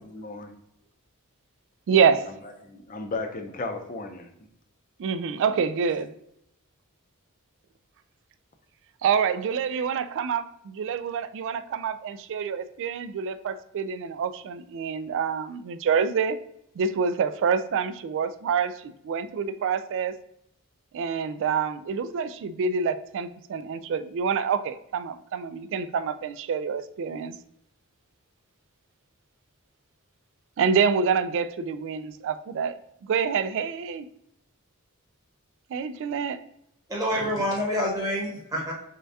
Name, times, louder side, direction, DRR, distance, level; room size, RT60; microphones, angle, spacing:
voice 1, 0.1-0.5 2.6-4.3, left 3 dB, 40° left, 4 dB, 0.6 m, -34 dB
voice 2, 1.9-2.3 5.0-6.1 9.0-16.4 16.8-20.1 20.9-27.3 30.6-34.1 35.7-36.4, right 6 dB, 60° right, 12 dB, 0.3 m, -27 dB
voice 3, 36.9-38.7, equal, 15° right, -5 dB, 1.1 m, -27 dB
6.4 x 2.3 x 2.7 m, 0.75 s
head